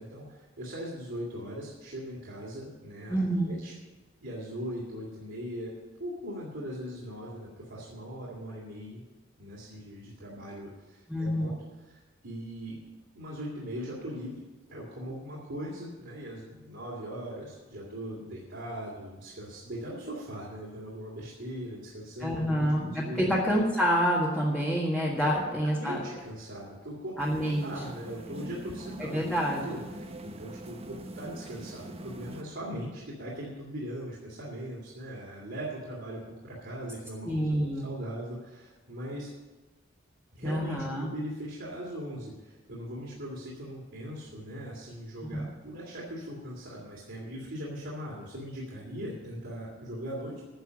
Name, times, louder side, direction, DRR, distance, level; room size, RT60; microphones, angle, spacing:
voice 1, 0.0-3.2 3.4-3.7 4.2-5.7 6.0-9.0 9.4-11.5 11.9-12.8 13.1-14.4 14.7-23.4 25.2-29.3 29.5-39.3 40.3-50.4, equal, 65° right, -6 dB, 2.7 m, -40 dB
voice 2, 3.1-3.6 11.1-11.5 22.2-26.0 27.2-27.7 29.0-29.6 37.3-37.9 40.4-41.1 45.3-45.4, equal, 5° left, -5 dB, 1.7 m, -27 dB
sound 1, 27.2-32.4, right 1 dB, 30° right, 1.0 m, -43 dB
10.5 x 7.0 x 9.5 m, 1.2 s
head